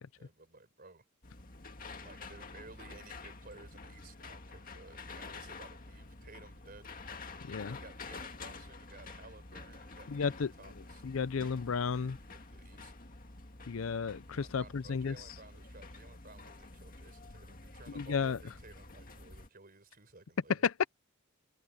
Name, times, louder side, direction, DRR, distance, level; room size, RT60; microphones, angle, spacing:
voice 1, 0.0-1.0 2.0-6.9 7.8-11.0 11.6-12.9 14.3-20.7, right 3 dB, 45° right, 4.8 m, -56 dB
sound 1, 1.2-19.5, left 3 dB, 40° left, 1.9 m, -49 dB
voice 2, 7.4-7.8 10.1-10.5 11.0-12.2 13.7-15.2 18.0-18.4 20.6-20.7, left 5 dB, 70° left, 0.5 m, -33 dB
head